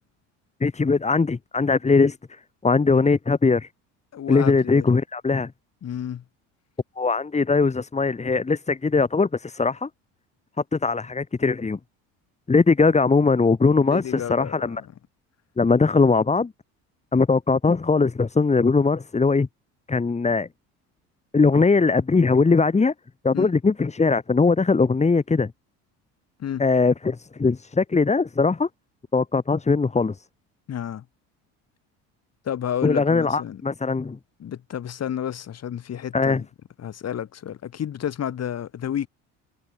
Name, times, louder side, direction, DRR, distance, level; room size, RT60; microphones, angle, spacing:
voice 1, 0.6-2.2 2.6-3.7 4.3-5.5 7.0-9.9 10.7-11.8 12.5-14.8 15.6-16.5 17.1-19.5 19.9-20.5 21.3-22.9 23.2-25.5 26.6-28.7 29.1-30.2 32.8-34.2 36.1-36.4, left 4 dB, 20° left, 3.0 m, -20 dB
voice 2, 4.1-4.8 5.8-6.2 13.8-14.9 23.3-23.5 26.4-26.6 30.7-31.0 32.4-33.6 34.4-36.5 36.8-39.1, left 9 dB, 45° left, 6.7 m, -31 dB
supercardioid pair, 100°, 35 cm